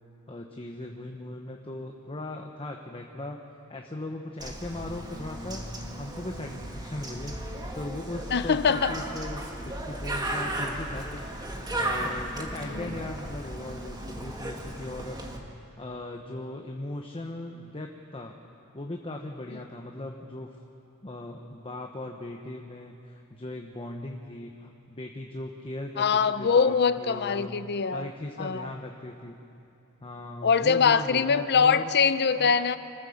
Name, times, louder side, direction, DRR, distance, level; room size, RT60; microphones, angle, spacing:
voice 1, 0.3-3.4 3.7-11.3 11.7-15.2 15.8-18.4 18.7-20.6 21.0-27.6 27.9-29.4 30.0-31.9 32.4-32.6, left 2 dB, 25° left, 2 dB, 0.9 m, -38 dB
Bird, 4.4-15.4, right 1 dB, 20° right, 1.7 m, -35 dB
voice 2, 8.3-8.9 12.6-13.0 19.5-19.6 26.0-28.1 28.4-28.7 30.4-32.8, left 6 dB, 50° left, 13 dB, 0.6 m, -23 dB
25.5 x 14.5 x 7.1 m, 2.8 s
head